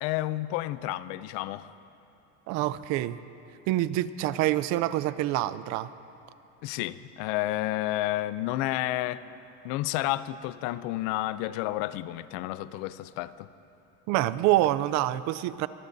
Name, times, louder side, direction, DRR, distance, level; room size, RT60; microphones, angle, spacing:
voice 1, 0.0-1.7 6.6-9.2 9.6-13.5, left 16 dB, 75° left, 0.6 m, -31 dB
voice 2, 2.5-3.2 3.7-5.9 14.1-15.7, right 15 dB, 55° right, 0.5 m, -26 dB
23.5 x 19.0 x 2.7 m
cardioid pair, 155°, 34 cm